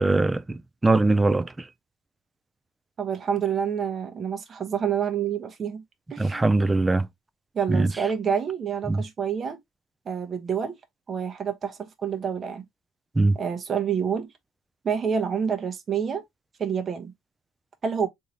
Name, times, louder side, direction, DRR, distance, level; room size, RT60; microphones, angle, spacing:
voice 1, 0.0-1.5 6.2-7.1 7.7-7.9 8.9-9.0 13.2-13.4, right 2 dB, 10° right, 0.4 m, -21 dB
voice 2, 3.0-5.8 6.1-6.4 7.5-9.6 10.1-10.7 11.1-12.7 13.3-14.3 14.8-16.2 16.6-17.1 17.8-18.1, right 7 dB, 35° right, 1.0 m, -28 dB
3.7 x 2.8 x 3.0 m
cardioid pair, 120°, 0 cm